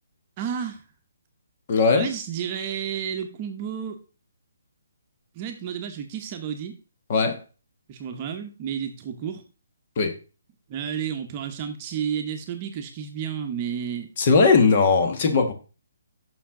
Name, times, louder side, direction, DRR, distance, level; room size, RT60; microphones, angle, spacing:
voice 1, 0.4-0.8 1.9-4.0 5.3-6.8 7.9-9.4 10.7-14.1, right 8 dB, 25° right, 0.9 m, -31 dB
voice 2, 1.7-2.1 7.1-7.4 10.0-10.1 14.2-15.5, left 4 dB, 40° left, 1.4 m, -19 dB
7.0 x 6.2 x 3.8 m
hypercardioid pair, 165°, 0 cm